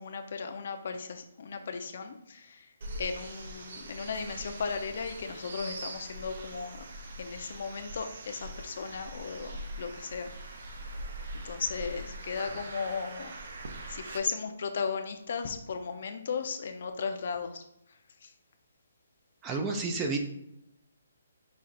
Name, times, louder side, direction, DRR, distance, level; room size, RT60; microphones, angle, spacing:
voice 1, 0.0-2.7 3.0-6.8 7.2-10.3 11.4-13.3 13.9-17.6 18.2-18.3, left 5 dB, 50° left, 7 dB, 0.5 m, -36 dB
sound 1, 2.8-14.2, right 1 dB, 50° right, 0.6 m, -42 dB
voice 2, 19.4-20.2, right 3 dB, 15° right, 4 dB, 0.4 m, -30 dB
5.5 x 2.4 x 3.9 m, 0.80 s
hypercardioid pair, 170°, 0 cm